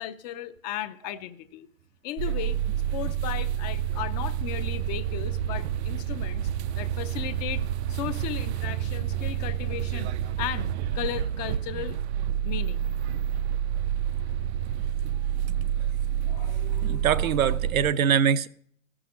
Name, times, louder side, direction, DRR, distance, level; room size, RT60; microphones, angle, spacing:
voice 1, 0.0-1.7 2.0-2.6 2.9-6.5 6.8-7.6 7.9-12.0 12.4-12.9 13.6-13.7 16.3-17.3, left 12 dB, 30° left, 0.6 m, -36 dB
sound 1, 2.2-17.9, right 10 dB, 55° right, 0.4 m, -29 dB
voice 2, 16.8-18.5, right 8 dB, 85° right, 0.7 m, -23 dB
15.0 x 6.2 x 6.2 m
hypercardioid pair, 135°, 40 cm